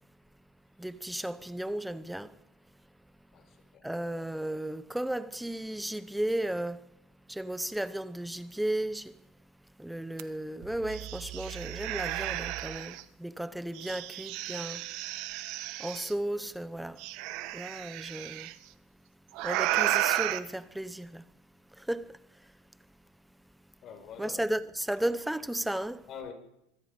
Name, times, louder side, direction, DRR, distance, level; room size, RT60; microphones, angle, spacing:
voice 1, 0.8-2.4 3.8-6.8 7.3-9.1 9.8-14.8 15.8-17.0 17.5-18.5 19.4-21.3 21.8-22.2 24.2-26.0, right 1 dB, 5° right, 0.8 m, -34 dB
voice 2, 3.3-3.8 23.8-24.4 26.1-26.3, left 7 dB, 35° left, 5.1 m, -45 dB
sound 1, 10.2-10.3 10.6-13.0 13.7-16.1 17.0-18.5 19.3-20.4, right 15 dB, 55° right, 1.2 m, -33 dB
25.0 x 22.0 x 5.3 m
supercardioid pair, 150°, 0 cm